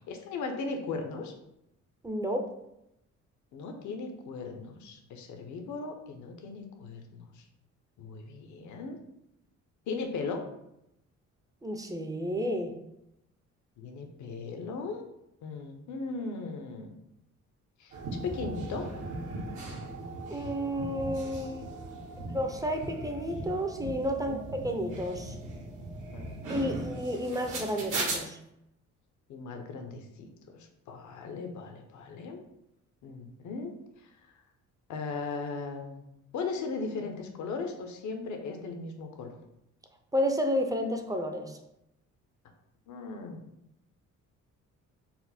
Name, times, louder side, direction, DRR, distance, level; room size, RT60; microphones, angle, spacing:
voice 1, 0.1-1.3 3.5-7.4 8.0-9.0 9.9-10.5 13.8-15.0 15.4-16.9 17.8-17.9 18.2-18.9 24.3-24.4 26.1-26.8 29.3-30.6 30.9-32.4 33.0-33.7 34.9-36.0 36.3-39.4 42.9-43.4, left 4 dB, 75° left, 4 dB, 0.7 m, -37 dB
voice 2, 2.0-2.5 11.6-12.8 20.3-21.7 22.3-25.4 26.5-28.4 40.1-41.6, equal, 10° right, 4 dB, 0.4 m, -31 dB
sound 1, 17.9-28.2, right 2 dB, 80° right, 1.2 m, -38 dB
4.2 x 2.1 x 4.1 m, 0.83 s
cardioid pair, 90°, 30 cm